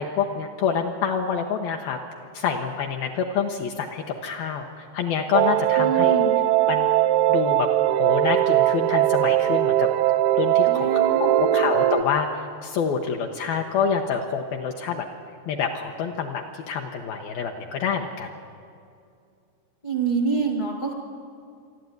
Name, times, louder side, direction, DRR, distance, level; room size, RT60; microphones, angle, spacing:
voice 1, 0.0-2.0 2.3-6.2 6.7-6.9 7.3-9.9 10.3-15.1 15.5-18.3, left 6 dB, 70° left, 3 dB, 2.4 m, -27 dB
sound 1, 5.3-12.0, right 13 dB, 80° right, 2.2 m, -20 dB
voice 2, 5.8-6.3 10.7-11.7 19.8-20.9, right 5 dB, 45° left, 2 dB, 1.2 m, -26 dB
27.5 x 12.0 x 9.4 m, 2.4 s
omnidirectional pair, 5.0 m